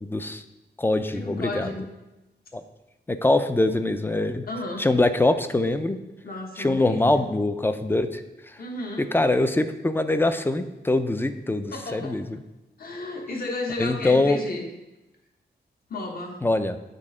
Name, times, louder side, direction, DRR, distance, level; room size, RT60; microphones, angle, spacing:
voice 1, 0.0-0.4 0.8-1.7 2.5-2.6 3.1-4.4 4.8-6.0 6.6-8.2 9.1-12.2 13.8-14.4 16.4-16.8, left 2 dB, 10° left, 10 dB, 0.4 m, -23 dB
voice 2, 1.1-1.9 4.5-4.9 6.2-7.2 8.6-9.1 11.7-12.2 12.8-14.6 15.9-16.4, left 2 dB, 55° left, 1 dB, 1.2 m, -33 dB
7.6 x 4.2 x 4.8 m, 1.0 s
wide cardioid pair, 130°, 18 cm